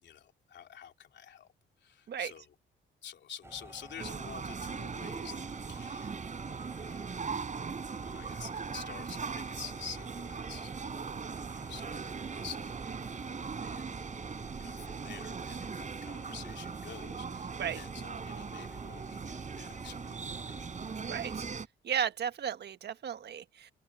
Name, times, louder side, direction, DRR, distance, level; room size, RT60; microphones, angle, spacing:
voice 1, 0.0-1.5 1.8-2.5 3.0-6.2 6.8-7.1 8.0-11.3 11.7-12.8 13.1-13.3 13.6-14.2 14.6-20.6, left 8 dB, 60° left, 3.1 m, -49 dB
sound 1, 3.4-21.5, right 2 dB, 15° right, 5.3 m, -50 dB
sound 2, 4.0-21.7, right 5 dB, 40° right, 5.1 m, -40 dB
voice 2, 21.1-21.4 21.8-23.7, right 8 dB, 55° right, 1.5 m, -34 dB
open air
cardioid pair, 90°, 20 cm